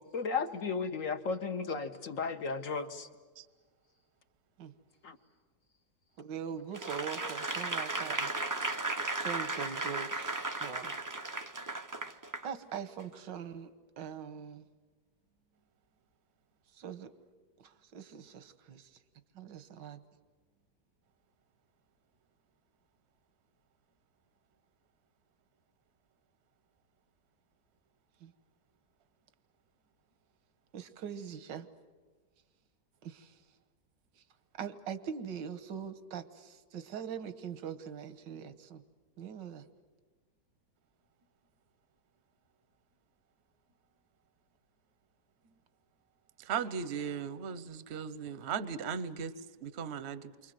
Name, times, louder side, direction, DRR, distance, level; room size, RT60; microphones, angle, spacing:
voice 1, 0.1-3.1 5.0-5.2, left 5 dB, 50° left, 7 dB, 1.5 m, -34 dB
voice 2, 6.2-8.3 9.1-10.9 12.4-13.7 14.0-14.6 16.7-17.1 17.6-19.0 19.3-20.0 28.2-28.3 30.7-31.7 33.0-33.4 34.2-34.3 34.6-38.8 39.2-39.6, right 7 dB, 85° right, 12 dB, 1.8 m, -42 dB
Applause / Crowd, 6.7-12.5 13.0-13.1, right 2 dB, 25° right, 0.4 m, -35 dB
voice 3, 46.5-49.3 49.6-50.2, right 7 dB, 45° right, 14 dB, 1.0 m, -37 dB
29.0 x 25.0 x 7.7 m, 1.4 s
omnidirectional pair, 1.9 m